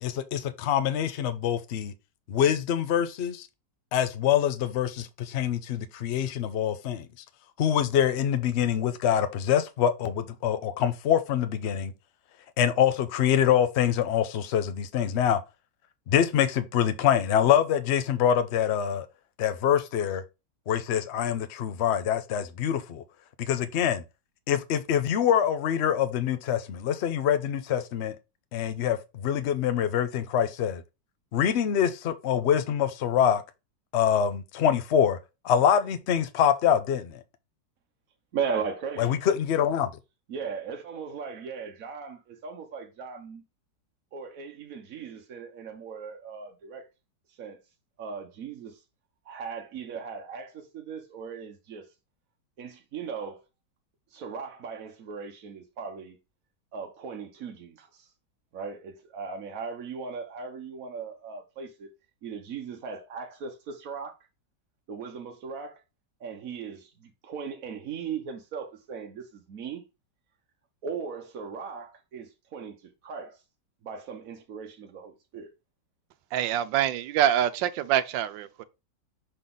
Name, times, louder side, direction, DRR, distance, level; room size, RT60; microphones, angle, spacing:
voice 1, 0.0-1.9 2.3-3.5 3.9-7.1 7.6-11.9 12.6-15.4 16.1-19.1 19.4-20.2 20.7-23.0 23.4-24.0 24.5-28.1 28.5-30.8 31.3-33.4 33.9-35.2 35.4-37.2 39.0-39.9, left 9 dB, 70° left, 0.6 m, -25 dB
voice 2, 38.3-39.2 40.3-43.4 44.1-46.8 47.4-47.6 48.0-48.8 49.3-51.8 52.6-53.4 54.1-56.2 56.7-58.1 58.5-61.9 62.2-64.2 64.9-65.8 66.2-69.8 70.8-72.7 73.0-73.4 73.8-75.5, right 6 dB, 55° right, 1.1 m, -37 dB
voice 3, 76.3-78.6, right 11 dB, 85° right, 1.3 m, -25 dB
6.7 x 3.9 x 3.8 m
omnidirectional pair, 2.0 m